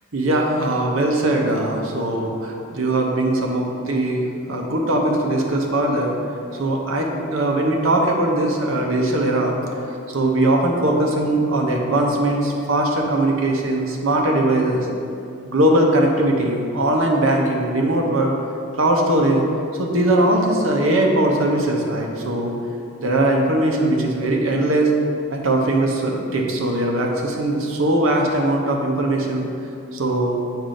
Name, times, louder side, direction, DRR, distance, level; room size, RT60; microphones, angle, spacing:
voice 1, 0.1-6.1 6.5-9.6 10.1-14.9 15.4-18.3 18.8-19.4 19.8-22.5 23.0-24.9 25.3-29.5 29.9-30.4, right 1 dB, 80° right, 1 dB, 0.8 m, -20 dB
7.4 x 2.6 x 5.1 m, 2.5 s
head